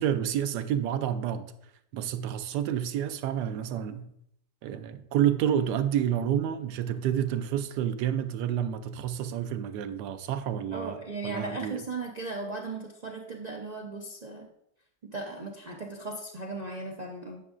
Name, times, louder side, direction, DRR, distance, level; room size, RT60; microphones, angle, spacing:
voice 1, 0.0-1.5 1.9-4.1 4.6-11.0 11.2-11.8, right 10 dB, 80° right, 11 dB, 1.2 m, -29 dB
voice 2, 10.7-14.5 15.1-17.4, right 3 dB, 50° right, -1 dB, 0.5 m, -37 dB
9.8 x 6.3 x 2.5 m, 0.75 s
omnidirectional pair, 1.8 m